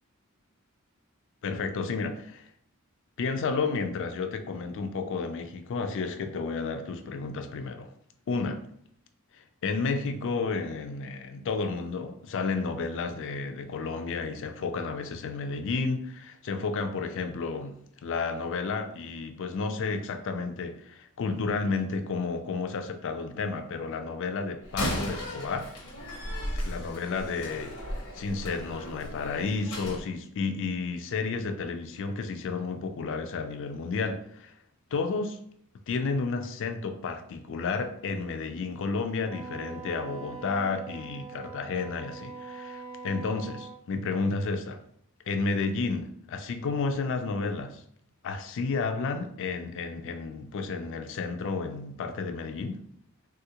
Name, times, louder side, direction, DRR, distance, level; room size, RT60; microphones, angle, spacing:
voice 1, 1.4-2.4 3.2-7.9 8.3-8.6 9.3-25.7 26.7-34.5 34.9-35.4 35.9-44.8 45.3-47.8 48.2-52.8, left 4 dB, 60° left, 7 dB, 0.4 m, -31 dB
Slam, 24.6-30.0, left 1 dB, 90° left, 0.9 m, -35 dB
Wind instrument woodwind instrument, 39.2-43.8, right 5 dB, 30° right, 0.4 m, -43 dB
3.4 x 2.4 x 2.8 m, 0.67 s
head